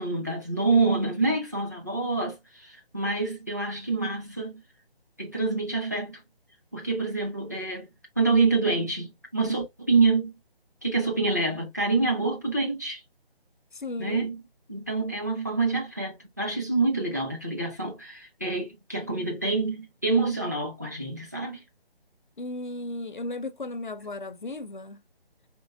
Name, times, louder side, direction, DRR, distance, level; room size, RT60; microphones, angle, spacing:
voice 1, 0.0-4.6 5.2-6.2 6.7-10.3 10.8-13.0 14.0-14.4 14.7-21.6, right 3 dB, 20° right, 0.5 m, -27 dB
voice 2, 13.7-14.3 22.4-25.0, left 2 dB, 55° left, 0.5 m, -35 dB
4.4 x 3.0 x 2.4 m
figure-of-eight pair, 150°, 30 cm